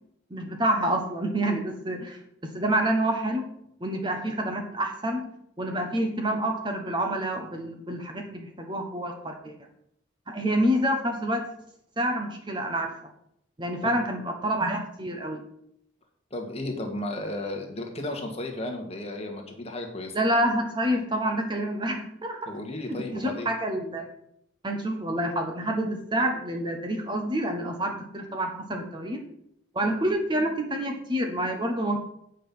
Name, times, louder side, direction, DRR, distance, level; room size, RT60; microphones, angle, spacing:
voice 1, 0.3-3.5 3.8-5.3 5.6-9.5 10.3-11.4 12.0-12.9 13.6-15.4 20.1-22.4 22.9-24.1 24.6-29.2 29.7-32.0, right 1 dB, 25° right, 3 dB, 1.0 m, -28 dB
voice 2, 16.3-20.2 22.5-23.5, left 1 dB, 30° left, 3 dB, 1.5 m, -34 dB
9.0 x 5.4 x 5.9 m, 0.74 s
head